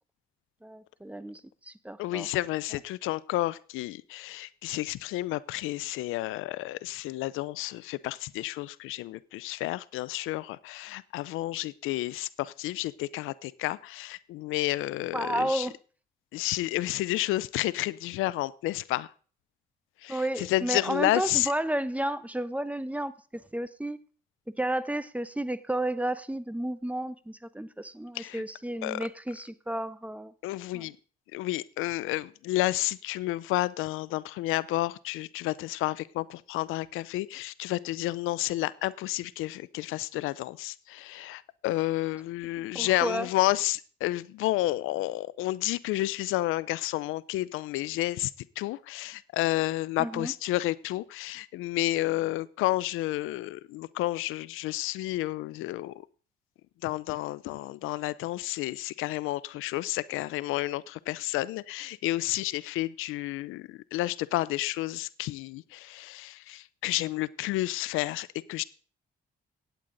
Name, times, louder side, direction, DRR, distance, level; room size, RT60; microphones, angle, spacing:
voice 1, 0.6-2.3 2.7-2.8 15.1-15.8 20.1-24.0 24.6-30.3 30.7-30.9 42.6-43.3 50.0-50.3, right 1 dB, 5° right, 15 dB, 0.9 m, -32 dB
voice 2, 2.0-15.7 16.3-19.1 20.0-21.5 28.1-28.4 28.8-29.1 30.4-31.0 31.3-55.9 56.8-68.6, left 17 dB, 85° left, 19 dB, 0.5 m, -31 dB
16.5 x 9.0 x 3.9 m, 0.41 s
supercardioid pair, 65°, 20 cm